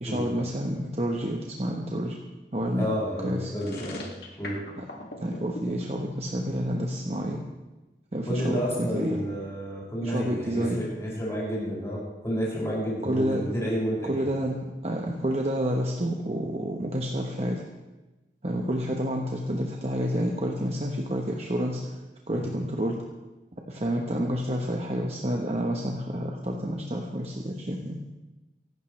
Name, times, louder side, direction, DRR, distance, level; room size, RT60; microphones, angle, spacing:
voice 1, 0.0-2.1 2.5-2.9 3.2-3.5 5.2-7.4 8.1-9.2 10.0-10.8 13.0-13.4 14.1-17.6 18.4-21.9 22.3-23.0 23.7-28.0, equal, 35° right, 0 dB, 1.1 m, -29 dB
voice 2, 2.7-4.1 4.4-4.6 8.3-14.3 22.3-22.5, equal, 15° left, -7 dB, 6.3 m, -30 dB
sound 1, 3.6-5.7, left 2 dB, 65° left, 2.3 m, -39 dB
24.0 x 12.0 x 3.3 m, 1.1 s
head